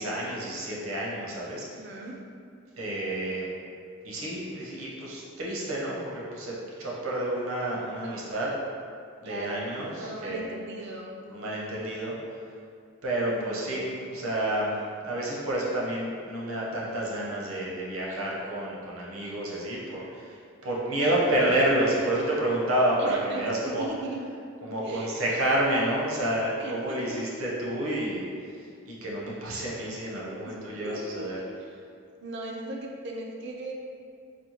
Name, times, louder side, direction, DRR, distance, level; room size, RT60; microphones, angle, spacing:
voice 1, 0.0-1.6 2.8-3.5 4.0-6.5 6.8-8.5 9.2-10.5 11.3-12.1 13.0-14.7 15.0-20.3 20.6-23.9 24.6-28.2 28.8-31.4, right 1 dB, 75° right, -5 dB, 0.8 m, -29 dB
voice 2, 1.7-2.2 8.0-8.2 9.2-11.1 13.2-13.7 21.0-21.5 23.0-24.2 24.8-25.3 26.6-27.2 30.4-30.6 30.8-31.3 31.6-31.8 32.2-33.7, right 2 dB, 55° right, -1 dB, 0.4 m, -38 dB
4.4 x 2.3 x 2.8 m, 2.3 s
head